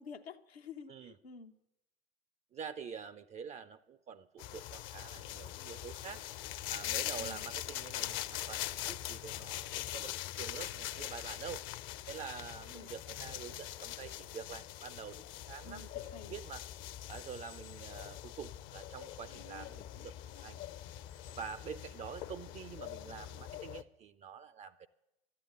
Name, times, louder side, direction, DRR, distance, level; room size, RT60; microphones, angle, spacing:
voice 1, 0.0-1.5 7.2-7.5 12.7-12.9 15.6-16.4, left 5 dB, 80° left, 4 dB, 0.8 m, -50 dB
voice 2, 2.5-6.2 6.7-11.6 12.1-15.9 16.3-16.7 17.1-20.6 21.1-24.9, right 6 dB, 25° right, 14 dB, 0.4 m, -47 dB
sound 1, 4.4-23.8, left 13 dB, 40° left, 0.6 m, -42 dB
13.0 x 9.4 x 7.8 m, 0.92 s
figure-of-eight pair, 80°, 30 cm